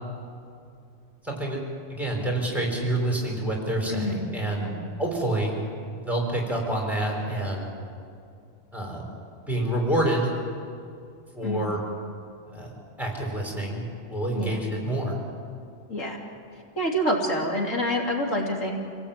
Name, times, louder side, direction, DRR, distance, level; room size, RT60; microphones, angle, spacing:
voice 1, 1.2-1.6 1.9-5.6 5.9-7.8 8.7-9.1 9.5-10.3 11.3-11.8 12.5-15.2, right 1 dB, ahead, -1 dB, 5.0 m, -28 dB
voice 2, 3.9-4.2 4.6-4.8 11.4-11.6 14.3-14.6 15.9-16.2 16.8-18.8, equal, 85° left, 0 dB, 3.4 m, -27 dB
28.0 x 17.5 x 8.9 m, 2.4 s
omnidirectional pair, 1.3 m